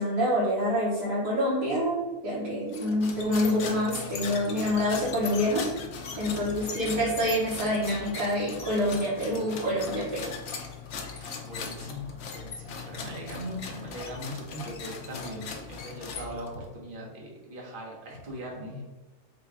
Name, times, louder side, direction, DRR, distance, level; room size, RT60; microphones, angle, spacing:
voice 1, 0.0-5.6 6.2-10.3, equal, 65° right, -9 dB, 1.6 m, -27 dB
sound 1, 2.7-16.6, left 5 dB, 60° left, 0.7 m, -39 dB
voice 2, 6.3-6.8 11.2-18.8, equal, 40° right, -2 dB, 1.0 m, -40 dB
4.0 x 2.3 x 4.6 m, 1.1 s
omnidirectional pair, 1.6 m